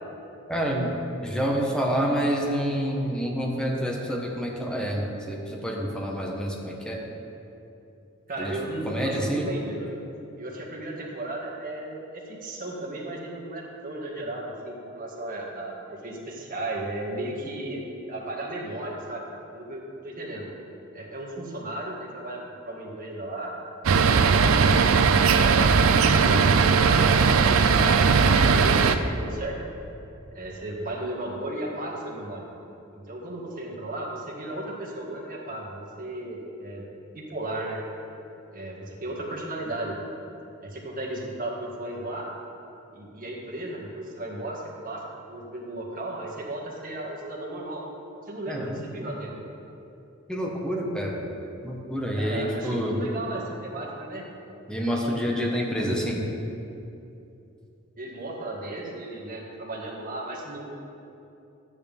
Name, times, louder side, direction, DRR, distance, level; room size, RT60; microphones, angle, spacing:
voice 1, 0.5-0.9 1.2-7.0 8.4-8.6 8.8-9.5 48.5-48.9 50.3-51.2 51.6-53.0 54.7-56.2, equal, 5° left, -2 dB, 1.3 m, -28 dB
voice 2, 8.3-9.9 10.4-17.8 18.1-19.3 19.5-20.5 20.9-23.5 24.0-25.7 26.0-29.6 30.3-32.5 32.9-36.8 37.1-37.8 38.5-40.0 40.6-42.3 42.9-47.8 48.3-49.3 52.2-54.3 55.8-55.9 58.0-60.7, right 1 dB, 45° right, -3 dB, 1.9 m, -35 dB
sound 1, 23.8-28.9, right 5 dB, 75° right, 0.5 m, -19 dB
13.0 x 9.5 x 3.6 m, 2.8 s
head